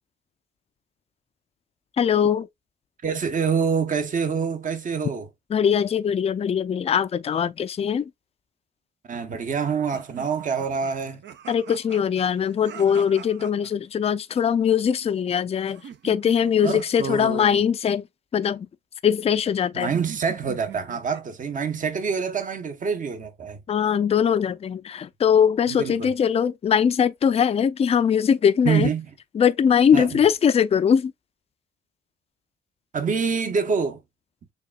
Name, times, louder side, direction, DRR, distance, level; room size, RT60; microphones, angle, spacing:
voice 1, 2.0-2.5 5.5-8.1 11.5-18.0 18.3-18.7 19.0-19.9 23.7-28.9 29.3-31.1, left 8 dB, 30° left, 0.4 m, -21 dB
voice 2, 3.0-5.3 9.1-11.2 16.6-17.6 19.7-23.6 25.7-26.1 28.6-29.1 29.9-30.2 32.9-34.0, right 6 dB, 40° right, 0.9 m, -26 dB
sound 1, 9.9-13.7 15.6-17.0 19.8-21.4, right 9 dB, 65° right, 0.7 m, -43 dB
6.6 x 2.4 x 2.3 m
cardioid pair, 90°, 20 cm